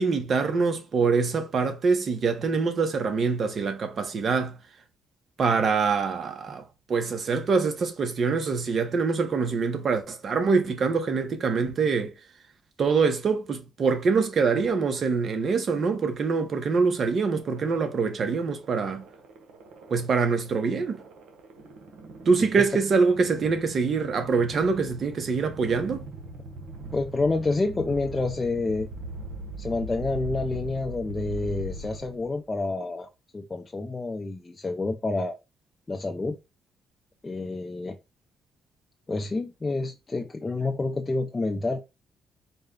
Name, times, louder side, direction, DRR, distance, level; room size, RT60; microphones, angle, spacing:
voice 1, 0.0-4.6 5.4-12.1 12.8-19.0 19.9-21.0 22.3-26.0, right 5 dB, 50° right, 0.9 m, -24 dB
sound 1, 17.3-32.4, right 2 dB, 85° right, 1.0 m, -41 dB
voice 2, 26.9-28.9 29.6-33.1 33.3-35.3 35.9-36.4 37.2-38.0 39.1-41.8, left 3 dB, 25° left, 0.5 m, -28 dB
4.2 x 2.2 x 3.7 m
cardioid pair, 90°, 0 cm